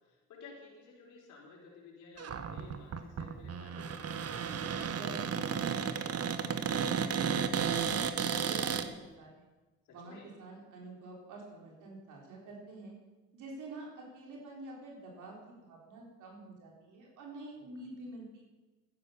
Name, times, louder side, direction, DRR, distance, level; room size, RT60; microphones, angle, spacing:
voice 1, 0.0-4.1 9.8-10.2 17.6-17.7, left 4 dB, 90° left, -2 dB, 4.3 m, -54 dB
Cupboard open or close, 2.2-8.9, right 7 dB, 55° right, 1.1 m, -33 dB
voice 2, 4.9-7.5 7.8-9.5 9.9-12.9 13.3-18.4, right 2 dB, 80° right, -1 dB, 4.0 m, -48 dB
13.0 x 10.5 x 7.0 m, 1.2 s
cardioid pair, 90°, 30 cm